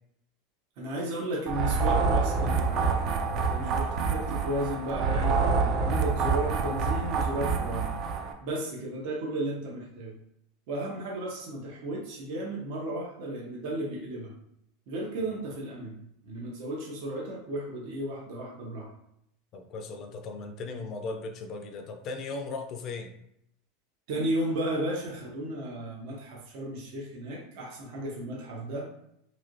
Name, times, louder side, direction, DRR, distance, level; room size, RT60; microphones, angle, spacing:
voice 1, 0.8-8.0 8.4-10.2 10.7-14.3 14.9-18.9 24.1-28.9, right 1 dB, 65° right, -3 dB, 0.9 m, -34 dB
sound 1, 1.5-8.3, right 4 dB, 45° right, 0.4 m, -27 dB
voice 2, 19.5-23.1, left 3 dB, 45° left, 5 dB, 0.4 m, -37 dB
3.0 x 2.8 x 2.6 m, 0.76 s
supercardioid pair, 125°, 0 cm